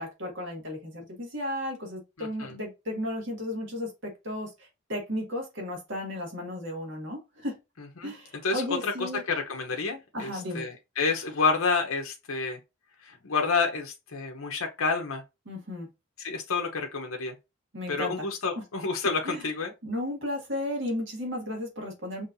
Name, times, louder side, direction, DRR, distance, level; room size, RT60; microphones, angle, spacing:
voice 1, 0.0-4.5 4.9-7.6 8.0-9.2 10.1-10.7 15.5-15.9 17.7-18.3 19.2-19.4 19.8-22.3, left 1 dB, 55° right, 2.0 m, -34 dB
voice 2, 2.2-2.5 8.0-8.1 8.4-12.6 13.1-15.2 16.2-17.3 17.9-19.7, left 4 dB, 75° left, 0.8 m, -29 dB
5.4 x 3.2 x 2.6 m
head